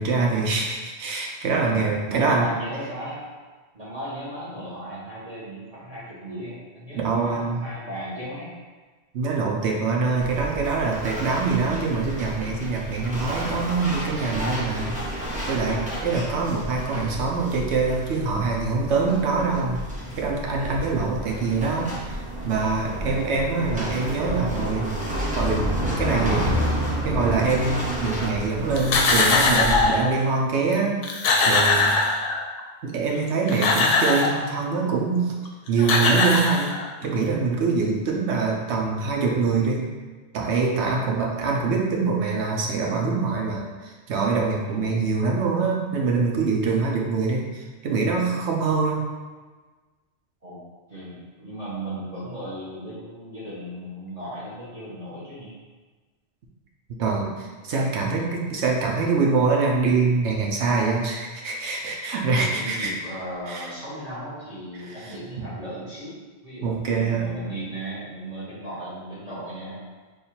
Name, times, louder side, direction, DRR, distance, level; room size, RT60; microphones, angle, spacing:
voice 1, 0.0-2.4 6.9-7.6 9.1-15.0 15.5-19.8 20.2-22.2 22.4-24.9 25.4-26.6 27.0-31.0 31.4-31.9 32.8-35.3 35.7-36.7 37.0-39.8 40.3-49.0 57.0-62.9 63.5-63.7 64.9-65.0 65.4-65.5 66.6-67.4, right 4 dB, 75° right, -1 dB, 0.9 m, -24 dB
voice 2, 1.6-3.2 3.7-8.5 40.9-41.3 44.7-45.0 50.4-50.6 50.9-55.5 62.2-66.2 66.4-69.8, right 1 dB, 35° right, -10 dB, 1.0 m, -36 dB
trees-scraping-on-roof, 10.2-29.8, equal, 10° right, 0.6 m, -30 dB
sound 1, 28.8-30.1 30.7-30.8 31.0-32.6 33.3-34.4 35.5-35.6 35.8-37.0, left 3 dB, 65° left, 0.7 m, -21 dB
3.3 x 2.3 x 4.2 m, 1.3 s
omnidirectional pair, 1.2 m